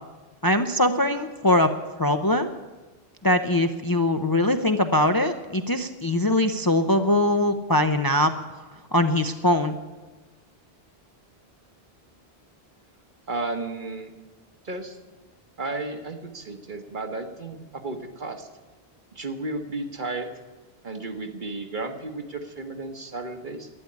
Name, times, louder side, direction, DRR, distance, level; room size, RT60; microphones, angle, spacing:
voice 1, 0.4-1.7 2.0-2.5 3.2-8.3 8.9-9.8, left 1 dB, 25° left, 7 dB, 0.6 m, -22 dB
voice 2, 13.3-14.1 14.6-15.0 15.6-18.5 19.1-20.3 20.8-23.7, right 2 dB, 50° right, 6 dB, 1.4 m, -33 dB
12.0 x 9.7 x 9.8 m, 1.2 s
omnidirectional pair, 1.1 m